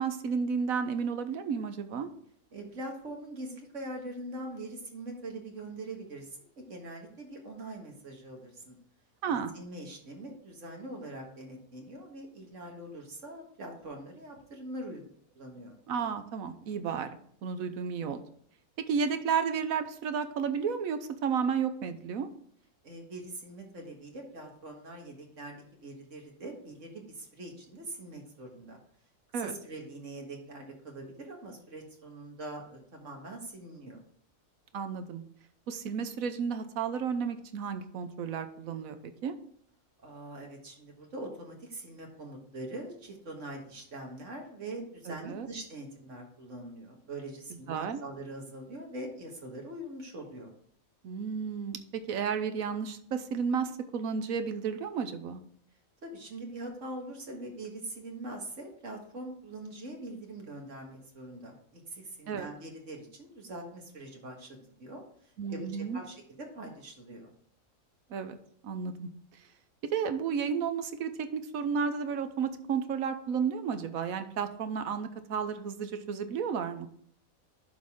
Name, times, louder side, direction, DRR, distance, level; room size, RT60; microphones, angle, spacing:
voice 1, 0.0-2.1 9.2-9.5 15.9-17.1 17.4-18.2 18.8-22.3 29.3-29.5 34.7-35.2 35.7-39.0 39.2-39.3 45.1-45.5 47.7-48.0 51.0-55.4 62.3-62.5 65.4-66.0 68.1-68.4 68.6-69.1 69.9-76.9, right 6 dB, 75° right, 9 dB, 1.2 m, -32 dB
voice 2, 2.5-8.8 9.3-15.1 15.4-15.8 22.8-28.8 29.3-34.0 40.0-50.5 56.0-66.2 66.5-67.3, right 1 dB, 60° right, 1 dB, 1.9 m, -43 dB
11.5 x 4.0 x 3.6 m, 0.63 s
omnidirectional pair, 1.5 m